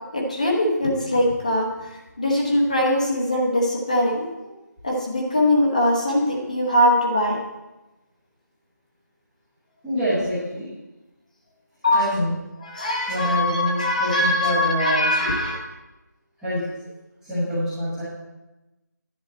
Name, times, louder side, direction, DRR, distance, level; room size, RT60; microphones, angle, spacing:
voice 1, 0.1-1.7 2.2-4.5 4.8-7.4 11.8-12.1 12.6-15.6, left 1 dB, 25° left, -1 dB, 1.0 m, -21 dB
voice 2, 9.8-10.7 11.9-12.3 13.1-15.1 16.4-16.6 17.3-18.0, equal, ahead, -17 dB, 0.9 m, -25 dB
10.5 x 7.2 x 4.3 m, 1.0 s
figure-of-eight pair, 175°, 10 cm